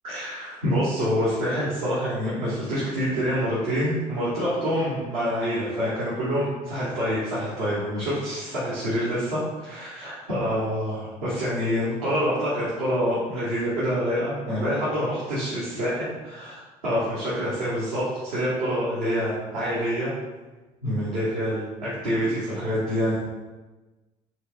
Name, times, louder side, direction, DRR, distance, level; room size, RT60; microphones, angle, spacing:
voice 1, 0.0-20.1 20.8-23.2, equal, 75° right, -10 dB, 1.3 m, -26 dB
4.7 x 4.0 x 2.6 m, 1.2 s
figure-of-eight pair, 55°, 19 cm